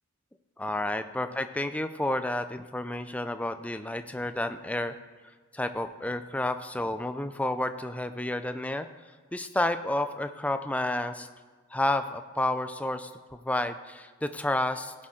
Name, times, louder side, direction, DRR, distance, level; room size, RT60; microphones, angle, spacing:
voice 1, 0.6-4.9 5.5-8.9 9.3-11.3 11.7-13.1 13.4-14.9, left 1 dB, 5° left, 9 dB, 0.4 m, -30 dB
17.0 x 6.4 x 3.7 m, 1.4 s
head